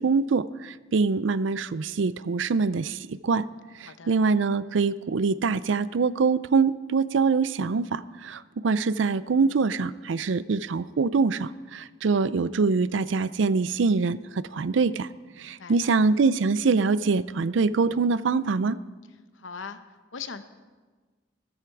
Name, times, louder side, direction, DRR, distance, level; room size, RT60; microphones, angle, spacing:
voice 1, 0.0-3.5 3.8-15.1 15.4-18.8, right 4 dB, 75° right, 17 dB, 0.5 m, -24 dB
voice 2, 3.8-4.1 15.4-15.9 19.3-19.8 20.1-20.4, left 6 dB, 90° left, 10 dB, 0.8 m, -40 dB
13.5 x 13.0 x 4.7 m, 1.4 s
head